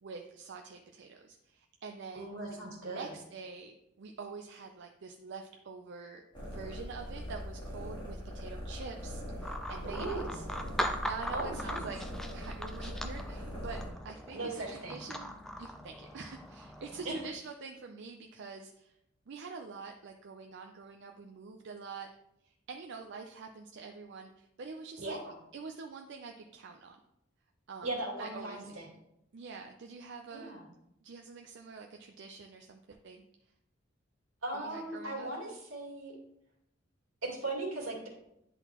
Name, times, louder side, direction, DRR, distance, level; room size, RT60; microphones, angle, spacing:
voice 1, 0.0-10.5 10.8-12.0 12.3-18.9 19.3-22.1 22.4-25.2 25.5-27.0 27.7-27.9 28.2-28.8 29.3-30.5 31.0-33.3 34.5-35.3, right 4 dB, 60° right, 3 dB, 0.5 m, -46 dB
voice 2, 2.1-3.1 9.8-10.5 11.3-11.9 14.3-15.0 17.0-17.1 25.0-25.3 27.8-28.9 30.3-30.6 34.4-36.1 37.2-38.1, right 2 dB, 85° right, -2 dB, 2.2 m, -38 dB
sound 1, 6.3-13.9, equal, 25° left, 1.7 m, -41 dB
sound 2, 9.4-17.3, equal, ahead, 0.4 m, -40 dB
9.9 x 3.9 x 2.9 m, 0.81 s
head